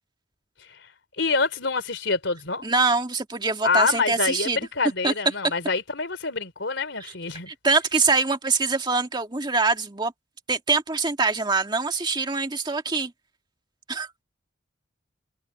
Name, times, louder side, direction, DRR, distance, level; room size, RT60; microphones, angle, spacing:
voice 1, 1.2-2.7 3.6-7.5, left 4 dB, 75° left, 3.3 m, -26 dB
voice 2, 2.6-4.6 5.0-5.1 5.4-5.5 7.0-7.1 7.5-10.1 10.5-13.1 13.9-14.1, right 4 dB, 25° right, 1.9 m, -24 dB
head